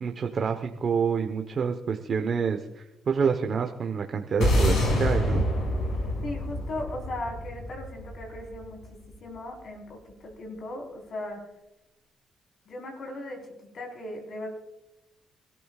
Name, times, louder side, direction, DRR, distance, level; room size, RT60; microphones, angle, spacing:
voice 1, 0.0-5.4, right 6 dB, 50° right, 4 dB, 1.1 m, -28 dB
sound 1, 4.4-8.9, left 1 dB, 75° left, 6.4 m, -26 dB
voice 2, 6.2-11.4 12.7-14.5, left 1 dB, 55° left, 2 dB, 4.5 m, -38 dB
26.0 x 13.5 x 2.5 m, 0.93 s
cardioid pair, 90°, 0 cm